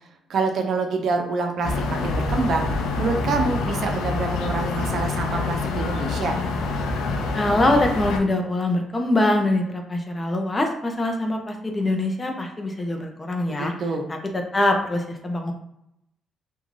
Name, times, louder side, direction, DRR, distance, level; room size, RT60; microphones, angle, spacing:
voice 1, 0.3-6.4 13.5-14.0, right 3 dB, 65° right, 3 dB, 0.5 m, -26 dB
sound 1, 1.6-8.2, left 3 dB, 90° left, 0.4 m, -26 dB
voice 2, 7.3-13.7 14.1-15.5, left 1 dB, 25° left, 4 dB, 0.5 m, -23 dB
2.5 x 2.2 x 3.1 m, 0.79 s
cardioid pair, 90°, 0 cm